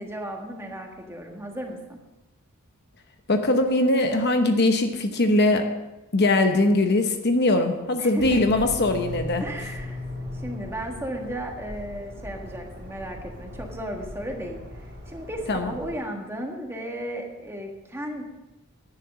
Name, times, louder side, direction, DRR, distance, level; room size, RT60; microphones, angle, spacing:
voice 1, 0.0-2.0 8.0-8.4 9.4-18.2, equal, 10° right, 2 dB, 1.6 m, -35 dB
voice 2, 3.3-5.7 6.1-9.4 15.5-15.7, left 2 dB, 50° left, 6 dB, 1.0 m, -21 dB
sound 1, 8.2-16.0, left 1 dB, 45° right, 3.5 m, -38 dB
10.5 x 10.0 x 6.2 m, 1.0 s
head